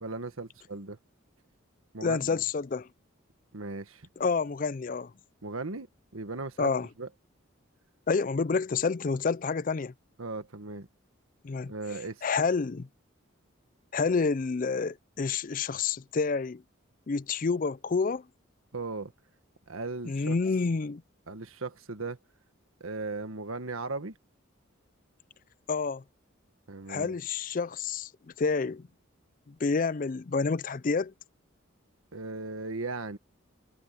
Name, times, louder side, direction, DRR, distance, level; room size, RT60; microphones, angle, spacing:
voice 1, 0.0-1.0 1.9-2.4 3.5-4.1 5.4-5.9 6.1-6.7 7.0-7.1 10.2-10.9 11.7-12.2 18.7-19.1 19.7-20.4 21.3-22.2 22.8-24.1 26.7-27.1 32.1-33.2, right 3 dB, 85° right, 1.6 m, -37 dB
voice 2, 2.0-2.9 4.2-5.1 6.6-6.9 8.1-9.9 11.4-11.7 12.2-12.9 13.9-16.6 17.1-18.2 20.0-21.0 25.7-26.0 26.9-28.1 28.4-28.9 29.5-31.1, left 4 dB, 40° left, 0.4 m, -28 dB
head